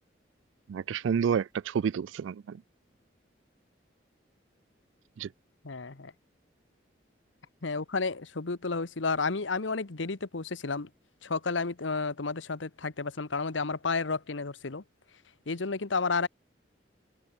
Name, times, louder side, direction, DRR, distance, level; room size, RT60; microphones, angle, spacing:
voice 1, 0.7-2.6 5.2-5.3, right 7 dB, 90° right, 0.3 m, -29 dB
voice 2, 5.6-6.1 7.6-10.9 11.2-14.8 15.5-16.3, left 4 dB, 90° left, 1.1 m, -31 dB
open air
head